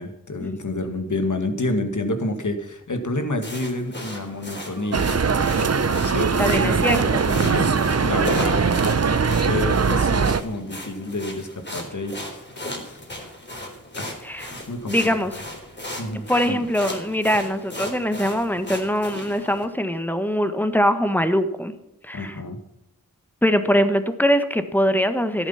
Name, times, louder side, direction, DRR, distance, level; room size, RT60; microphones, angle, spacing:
voice 1, 0.0-5.1 5.7-7.7 8.0-8.7 9.4-12.1 12.8-13.0 14.0-14.2 14.5-15.4 16.0-16.6 22.1-22.6, left 2 dB, 65° left, 7 dB, 2.0 m, -29 dB
sound 1, 3.4-19.6, left 1 dB, 35° left, 3.7 m, -37 dB
sound 2, 4.0-9.6, equal, 15° right, 2.6 m, -44 dB
sound 3, 4.9-10.4, right 5 dB, 50° right, 0.8 m, -21 dB
voice 2, 6.4-7.3 14.2-14.5 14.9-15.3 16.3-21.7 22.0-22.4 23.4-25.5, equal, 5° left, 10 dB, 1.4 m, -22 dB
13.0 x 11.0 x 5.8 m, 0.84 s
wide cardioid pair, 55°, 33 cm